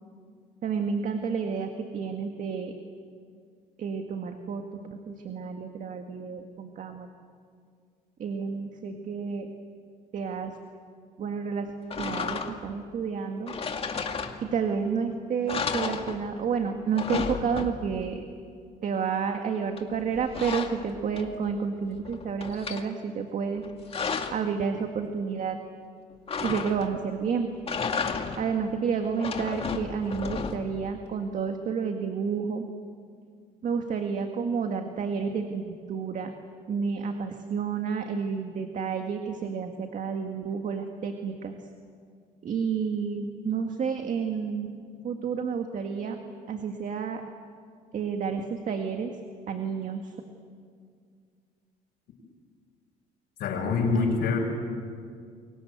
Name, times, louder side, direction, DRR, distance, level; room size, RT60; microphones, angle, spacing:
voice 1, 0.6-2.7 3.8-7.1 8.2-9.5 10.1-10.6 11.2-13.5 14.4-18.2 18.8-23.6 24.3-25.6 26.4-27.5 28.4-32.6 33.6-36.4 36.7-41.5 42.4-44.7 45.0-46.2 46.5-47.2 47.9-49.2 49.5-50.1 53.9-54.1, right 6 dB, 50° right, 5 dB, 1.9 m, -30 dB
sound 1, 11.9-12.8 13.5-14.7 15.1-15.2 15.5-16.5 16.8-18.1 19.8-21.5 21.9-22.9 23.5-24.5 26.3-27.1 27.5-28.6 29.0-30.8, left 5 dB, 35° left, 2.3 m, -33 dB
voice 2, 53.4-54.4, left 4 dB, 75° left, -4 dB, 5.8 m, -25 dB
29.5 x 23.0 x 8.1 m, 2.2 s
cardioid pair, 110°, 17 cm